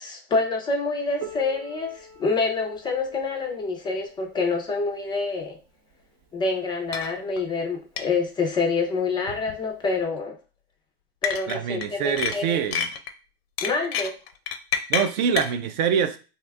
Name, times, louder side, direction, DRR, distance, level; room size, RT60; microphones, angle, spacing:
voice 1, 0.0-5.6 6.3-10.4 11.2-12.6 13.6-14.1, left 4 dB, 15° left, 3 dB, 0.3 m, -27 dB
Piano, 1.2-6.5 7.4-7.5 8.0-8.1 8.9-9.0 10.0-10.1, right 3 dB, 80° right, 0.8 m, -45 dB
sound 1, 6.9-7.1 7.4-7.5 8.0-8.1 9.3-9.5 11.2-11.9 12.2-13.1 13.6-15.5, left 7 dB, 85° left, 0.5 m, -28 dB
voice 2, 11.5-12.9 14.9-16.2, right 7 dB, 50° right, 10 dB, 0.4 m, -25 dB
2.7 x 2.3 x 3.3 m, 0.34 s
hypercardioid pair, 120°, 30 cm